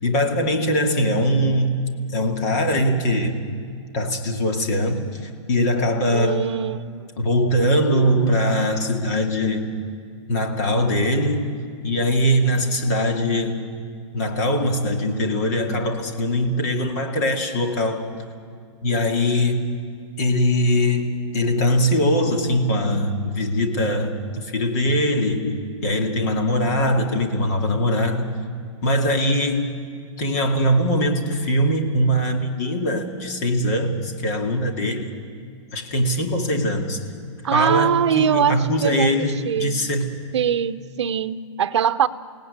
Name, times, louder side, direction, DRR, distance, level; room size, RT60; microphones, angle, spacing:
voice 1, 0.0-1.8 2.1-3.4 3.9-6.5 7.2-9.8 10.3-11.5 11.8-13.6 14.1-18.1 18.8-19.6 20.2-28.3 28.8-29.9 30.2-35.1 35.7-37.0 37.5-40.1, equal, 30° left, 3 dB, 2.3 m, -21 dB
voice 2, 6.1-6.8 7.6-8.1 37.4-39.1 39.4-39.8 40.3-42.1, right 9 dB, 60° right, 13 dB, 0.9 m, -22 dB
29.5 x 17.5 x 9.7 m, 2.1 s
hypercardioid pair, 175°, 16 cm